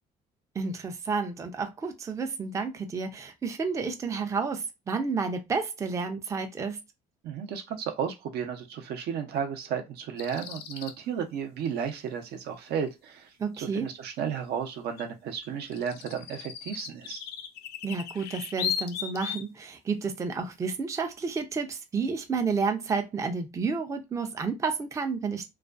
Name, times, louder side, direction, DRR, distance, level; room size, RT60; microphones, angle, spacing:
voice 1, 0.6-6.8 13.4-13.9 17.8-25.4, right 4 dB, 20° right, 0.4 m, -31 dB
voice 2, 7.2-17.2, right 7 dB, 75° right, 0.6 m, -33 dB
sound 1, 10.2-10.9 15.0-15.1 15.4-19.5, left 8 dB, 70° left, 0.4 m, -36 dB
2.4 x 2.2 x 2.4 m
cardioid pair, 110°, 17 cm